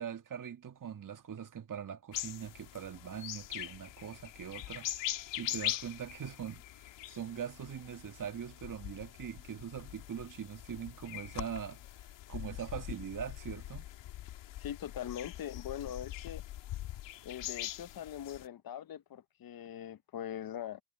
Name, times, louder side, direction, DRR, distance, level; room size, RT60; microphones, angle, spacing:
voice 1, 0.0-4.9 5.4-6.6 7.1-11.8 12.3-13.9, right 8 dB, 45° right, 1.9 m, -42 dB
sound 1, 2.1-18.5, left 14 dB, 85° left, 2.6 m, -42 dB
voice 2, 14.6-16.4 17.2-20.8, left 10 dB, 55° left, 0.9 m, -42 dB
supercardioid pair, 70°, 43 cm